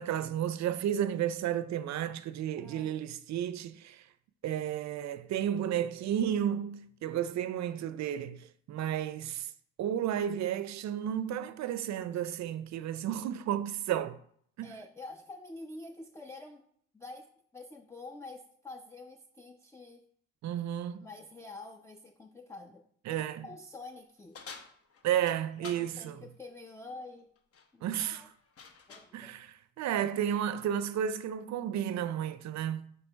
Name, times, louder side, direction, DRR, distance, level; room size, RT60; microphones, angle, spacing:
voice 1, 0.0-4.0 4.4-9.5 9.8-14.2 14.6-14.7 20.4-21.1 23.1-23.5 25.0-26.1 27.8-28.3 29.1-32.9, right 10 dB, 65° right, 0.5 m, -32 dB
voice 2, 2.6-3.0 14.6-16.7 16.9-17.3 17.5-20.0 21.0-24.4 25.6-27.3 27.7-28.3 28.9-29.3, left 2 dB, 10° left, 0.4 m, -47 dB
sound 1, 24.3-25.9 27.4-27.7 28.0-29.1, left 5 dB, 50° left, 0.9 m, -49 dB
6.2 x 2.9 x 5.4 m
cardioid pair, 90°, 30 cm